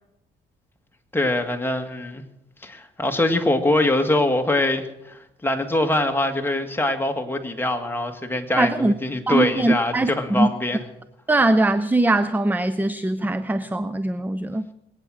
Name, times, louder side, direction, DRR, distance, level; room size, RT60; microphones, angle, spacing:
voice 1, 1.1-2.2 2.6-10.8, left 1 dB, 10° left, 5 dB, 2.0 m, -23 dB
voice 2, 8.6-8.9 9.3-10.5 11.3-14.7, right 2 dB, 10° right, 13 dB, 0.6 m, -21 dB
22.0 x 9.0 x 6.3 m, 0.87 s
cardioid pair, 90°, 20 cm